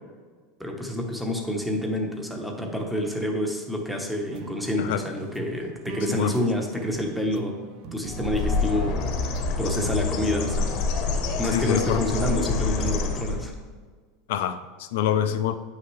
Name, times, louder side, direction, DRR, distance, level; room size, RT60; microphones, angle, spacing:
voice 1, 0.6-7.5 7.9-10.7 11.4-13.5, left 1 dB, 5° right, 2 dB, 0.9 m, -28 dB
sound 1, 4.3-9.4 9.9-10.2, right 8 dB, 50° right, 0.4 m, -42 dB
Bird, 8.0-13.6, left 4 dB, 50° left, 0.9 m, -27 dB
voice 2, 11.4-12.0 14.3-15.6, left 10 dB, 75° left, 11 dB, 0.5 m, -25 dB
8.7 x 5.7 x 3.2 m, 1.5 s
supercardioid pair, 160°, 0 cm